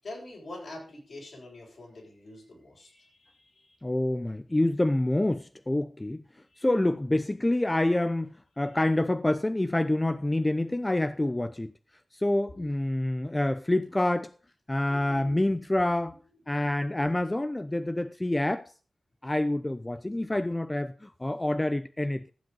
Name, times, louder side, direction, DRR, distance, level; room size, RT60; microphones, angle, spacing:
voice 1, 0.0-3.8 6.5-6.6 12.5-12.6 14.9-15.4 15.7-15.9 16.9-17.4 20.1-20.6, left 2 dB, 70° left, 7.6 m, -46 dB
voice 2, 3.8-6.2 6.6-11.7 12.1-14.3 14.7-16.2 16.5-18.7 19.2-22.3, left 1 dB, 20° left, 0.7 m, -27 dB
15.0 x 7.7 x 5.4 m
cardioid pair, 45°, 0 cm